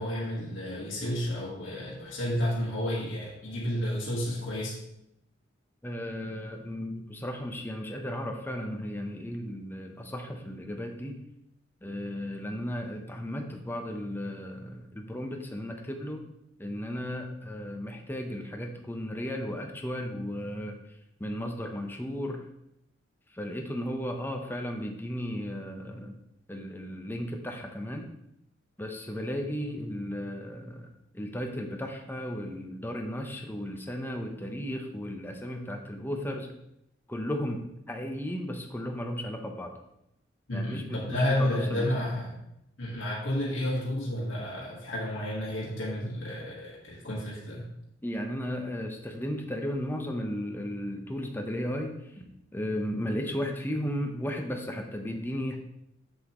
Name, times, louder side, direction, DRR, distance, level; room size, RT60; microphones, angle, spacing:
voice 1, 0.0-4.7 40.5-42.3 42.8-47.6, left 1 dB, 85° left, -5 dB, 1.6 m, -31 dB
voice 2, 5.8-11.2 11.8-16.3 16.6-20.8 21.2-22.5 23.3-26.2 26.5-28.1 28.8-30.9 31.1-36.5 37.1-39.7 40.5-41.9 48.0-52.3 52.5-55.6, equal, 10° left, 3 dB, 0.8 m, -35 dB
7.3 x 7.0 x 3.1 m, 0.80 s
head